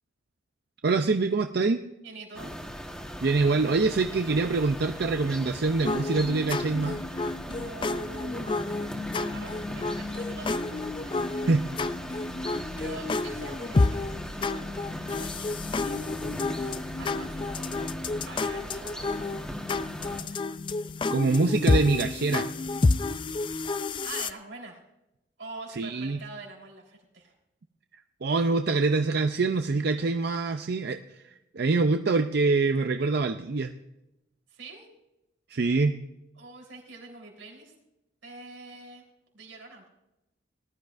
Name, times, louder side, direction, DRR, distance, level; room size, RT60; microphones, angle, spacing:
voice 1, 0.8-1.9 3.2-7.0 11.3-11.7 21.1-22.5 25.8-26.2 28.2-31.0 31.5-33.7 35.5-35.9, right 3 dB, 55° right, 7 dB, 0.5 m, -25 dB
voice 2, 2.0-2.5 7.4-8.7 9.2-11.3 12.5-16.4 16.8-17.6 18.0-19.2 20.0-20.4 24.0-24.8 25.4-27.3 34.5-34.9 36.4-37.7 38.2-39.0 39.3-39.8, right 3 dB, 85° right, 0 dB, 3.8 m, -45 dB
sound 1, 2.3-20.2, equal, 5° left, 1.3 m, -39 dB
sound 2, 5.8-24.3, left 3 dB, 25° left, 0.3 m, -30 dB
19.0 x 12.0 x 2.5 m, 0.90 s
head